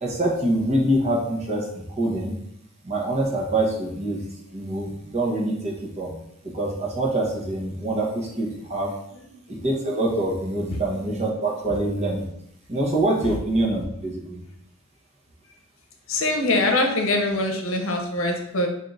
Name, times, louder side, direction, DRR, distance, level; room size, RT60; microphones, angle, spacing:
voice 1, 0.0-2.3 2.8-4.2 4.5-6.1 6.4-8.9 9.5-12.3 12.7-14.5, right 1 dB, 35° right, -2 dB, 0.9 m, -25 dB
voice 2, 16.1-18.7, left 2 dB, 80° left, 2 dB, 0.7 m, -23 dB
3.6 x 2.7 x 3.9 m, 0.74 s
head